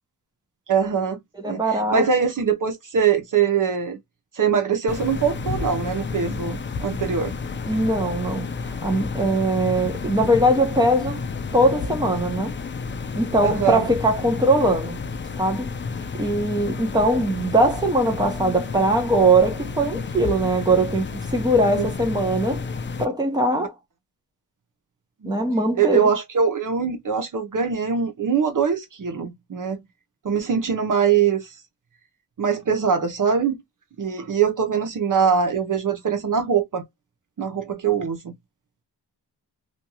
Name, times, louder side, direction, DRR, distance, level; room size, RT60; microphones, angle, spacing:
voice 1, 0.7-1.2 1.5-4.0 4.3-7.3 13.4-13.8 21.7-21.9 25.2-25.4 25.8-29.8 30.2-31.5 32.4-33.6 34.0-36.8 37.4-38.3, right 6 dB, 50° right, 0.8 m, -22 dB
voice 2, 1.4-2.0 7.7-11.2 11.5-12.5 13.1-15.0 15.4-15.8 16.2-22.6 23.0-23.7 25.2-26.1, right 1 dB, 10° right, 0.9 m, -21 dB
sound 1, 4.9-23.1, left 4 dB, 30° left, 0.4 m, -31 dB
2.6 x 2.3 x 2.8 m
cardioid pair, 75°, 41 cm